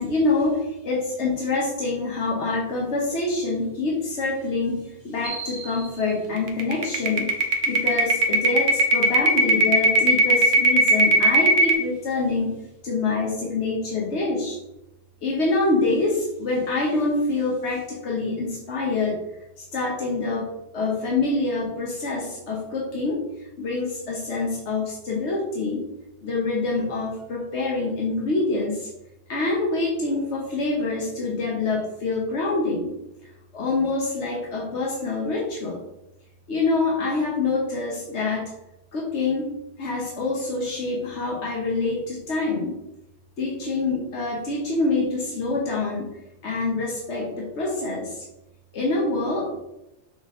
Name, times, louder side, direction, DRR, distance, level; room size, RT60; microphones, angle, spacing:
voice 1, 0.0-7.3 7.6-12.6 12.8-14.6 15.2-19.2 19.7-25.9 26.2-28.9 29.3-32.9 33.5-35.8 36.5-38.5 38.9-39.5 39.8-42.8 43.4-46.1 46.4-48.2 48.7-49.6, left 3 dB, 85° left, -3 dB, 1.4 m, -26 dB
sound 1, 5.3-5.7 6.0-6.1 6.5-11.7, right 3 dB, 65° right, 1.2 m, -17 dB
6.7 x 4.2 x 3.8 m, 0.91 s
omnidirectional pair, 1.1 m